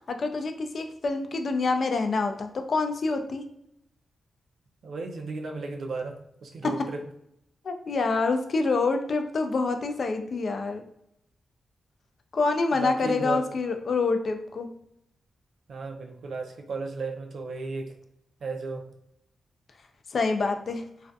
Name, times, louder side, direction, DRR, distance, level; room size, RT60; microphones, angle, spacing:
voice 1, 0.1-3.4 6.6-6.7 7.6-10.8 12.3-14.7 20.1-20.8, left 3 dB, 55° left, 6 dB, 0.3 m, -26 dB
voice 2, 4.8-7.1 12.7-13.5 15.7-18.0 18.4-18.9, right 3 dB, 65° right, 3 dB, 0.4 m, -34 dB
2.4 x 2.2 x 2.5 m, 0.77 s
cardioid pair, 100°, 0 cm